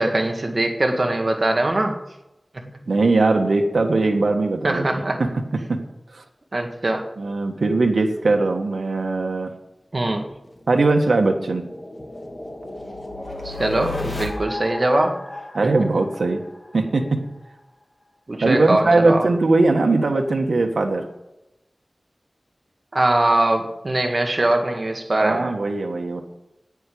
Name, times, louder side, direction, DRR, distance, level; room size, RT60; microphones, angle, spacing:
voice 1, 0.0-2.0 2.5-2.7 4.6-5.2 6.5-7.1 9.9-10.3 13.4-15.2 15.9-16.0 18.3-19.3 22.9-25.5, right 1 dB, 45° right, 3 dB, 1.8 m, -21 dB
voice 2, 2.9-4.9 5.2-5.3 5.7-5.8 6.1-6.2 7.2-9.5 10.7-11.6 15.5-16.4 16.7-17.2 18.4-21.0 25.2-26.2, right 3 dB, 90° right, 3 dB, 1.5 m, -20 dB
sound 1, 10.3-17.1, left 2 dB, 30° left, 3.0 m, -34 dB
9.9 x 9.6 x 8.7 m, 0.92 s
wide cardioid pair, 75°, 0 cm